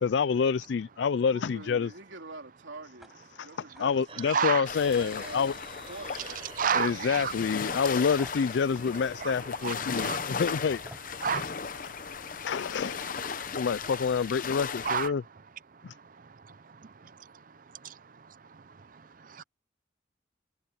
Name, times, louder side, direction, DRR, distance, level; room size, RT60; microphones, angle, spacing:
voice 1, 0.0-1.9 3.4-3.5 3.8-5.5 6.7-10.8 11.1-11.5 12.4-15.2 15.8-15.9, left 6 dB, 70° left, 0.4 m, -28 dB
voice 2, 1.3-5.6 5.9-6.5, right 2 dB, 85° right, 3.6 m, -46 dB
sound 1, 3.0-3.2 3.5-3.9 4.3-4.4 4.8-6.0 6.3-6.7 7.1-7.3 8.2-8.5 9.5-9.6 10.9-11.1 12.7-12.8 13.1-13.4, equal, ahead, 5.0 m, -52 dB
sound 2, 4.1-11.0, right 3 dB, 30° right, 5.5 m, -49 dB
voice 3, 4.3-4.6 6.6-7.3 9.2-9.3 9.6-10.4 11.2-11.9 14.8-15.1 16.4-16.6 16.8-17.3 17.8-18.0 18.9-19.4, right 7 dB, 45° right, 0.5 m, -31 dB
sound 3, 4.7-15.1, left 6 dB, 45° left, 0.8 m, -36 dB
head